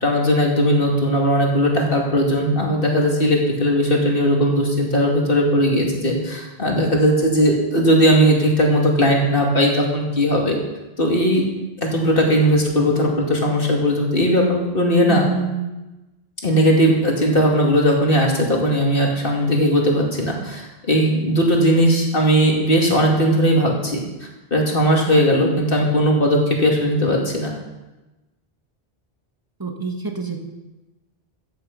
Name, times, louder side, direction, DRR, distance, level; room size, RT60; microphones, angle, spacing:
voice 1, 0.0-10.6 11.0-11.4 11.8-15.3 16.4-24.0 24.5-27.5, equal, 60° left, 0 dB, 2.7 m, -18 dB
voice 2, 15.1-15.7 29.6-30.4, right 4 dB, 20° right, 3 dB, 1.6 m, -26 dB
14.5 x 9.9 x 5.4 m, 1.1 s
omnidirectional pair, 1.0 m